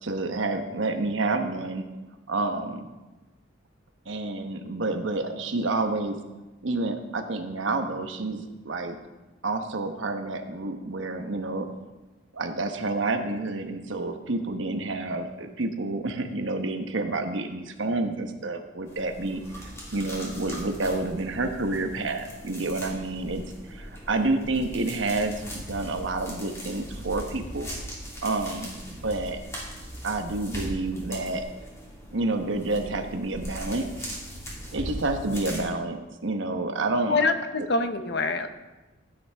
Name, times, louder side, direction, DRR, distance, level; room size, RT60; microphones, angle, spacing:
voice 1, 0.0-1.8 2.3-2.9 4.1-6.2 6.6-9.0 9.4-11.7 12.3-19.4 19.9-23.4 23.7-27.7 28.2-29.4 30.0-31.4 32.1-34.2 34.7-37.2, right 2 dB, 80° right, 6 dB, 1.1 m, -29 dB
sound 1, 18.9-35.6, equal, 15° left, 2.9 m, -39 dB
voice 2, 37.1-38.5, left 3 dB, 60° left, 9 dB, 0.8 m, -25 dB
15.0 x 9.4 x 3.5 m, 1.2 s
head